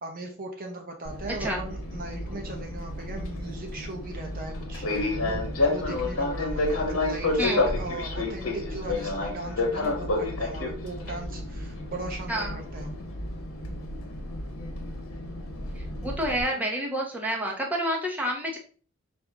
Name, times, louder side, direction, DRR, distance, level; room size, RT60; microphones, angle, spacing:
voice 1, 0.0-12.9, right 3 dB, 45° right, 2 dB, 0.7 m, -38 dB
Fixed-wing aircraft airplane, 1.0-16.4, left 2 dB, 75° left, 1.1 m, -30 dB
voice 2, 12.3-12.6 15.8-18.6, equal, 10° right, -1 dB, 0.9 m, -29 dB
5.1 x 2.6 x 3.4 m, 0.40 s
head